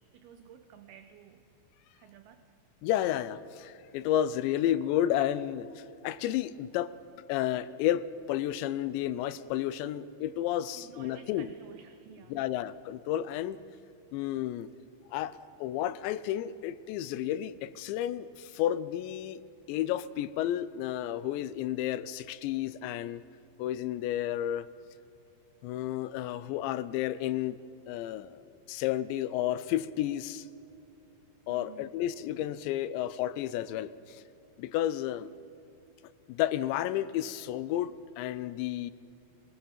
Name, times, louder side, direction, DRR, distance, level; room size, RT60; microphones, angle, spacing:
voice 1, 0.1-1.4 1.9-2.5 10.7-12.4 31.5-31.9, right 9 dB, 75° right, 9 dB, 2.4 m, -52 dB
voice 2, 2.8-6.9 7.3-11.5 12.3-13.6 14.1-14.7 15.1-19.4 19.7-23.2 23.6-24.7 25.6-27.6 27.9-30.5 31.5-34.2 34.6-35.3 36.3-38.9, left 12 dB, 80° left, 15 dB, 2.8 m, -31 dB
24.5 x 17.5 x 7.3 m, 2.8 s
omnidirectional pair, 5.4 m